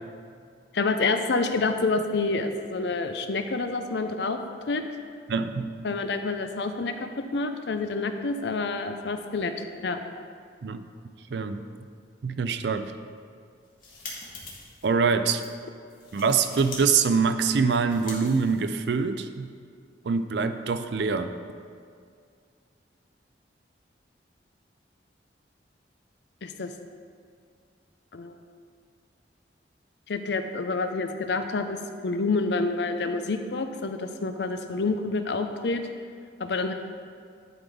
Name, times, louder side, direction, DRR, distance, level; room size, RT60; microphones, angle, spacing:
voice 1, 0.7-4.4 4.7-4.8 5.8-9.5 9.8-10.0 26.4-26.7 28.1-28.4 30.1-35.8 36.4-36.7, left 3 dB, 70° left, 7 dB, 0.5 m, -28 dB
voice 2, 5.3-5.7 10.6-10.8 11.3-11.6 12.2-12.9 14.8-15.4 16.1-19.5 20.0-21.3, right 5 dB, 70° right, 9 dB, 0.4 m, -24 dB
sound 1, 13.5-14.9 15.3-15.5 15.9-16.8 17.1-19.0, left 3 dB, 50° left, 1.7 m, -43 dB
11.0 x 3.9 x 4.8 m, 2.2 s
head